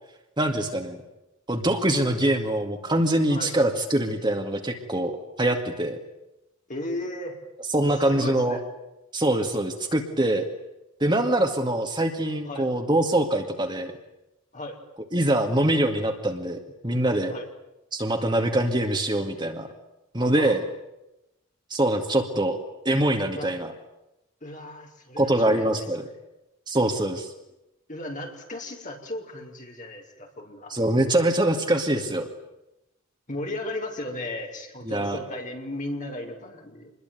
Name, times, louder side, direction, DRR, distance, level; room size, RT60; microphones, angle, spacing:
voice 1, 0.4-1.0 1.5-5.1 5.4-6.0 7.7-8.6 9.1-10.5 11.0-13.9 15.1-17.3 17.9-19.7 20.1-20.6 21.7-22.6 22.9-23.7 25.2-26.0 26.7-27.3 30.7-32.3 34.9-35.2, right 1 dB, 20° right, 5 dB, 2.2 m, -24 dB
voice 2, 6.7-7.4 8.0-8.6 12.5-12.7 14.5-14.8 17.3-17.5 20.4-20.5 23.3-23.5 24.4-25.9 27.9-30.8 33.3-36.9, left 1 dB, 35° left, 2 dB, 5.6 m, -35 dB
27.5 x 21.5 x 9.4 m, 0.91 s
head